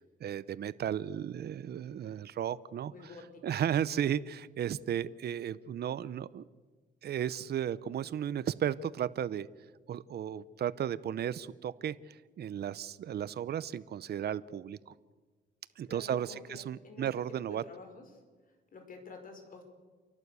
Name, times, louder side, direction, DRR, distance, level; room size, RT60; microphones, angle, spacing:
voice 1, 0.0-2.9 3.4-6.4 7.0-9.5 9.9-14.9 15.8-17.6, right 9 dB, 55° right, 17 dB, 0.7 m, -34 dB
voice 2, 2.9-3.7 15.9-17.1 17.5-18.1 18.7-19.6, left 3 dB, 45° left, 5 dB, 5.2 m, -50 dB
28.5 x 12.0 x 8.2 m, 1.4 s
cardioid pair, 90°, 20 cm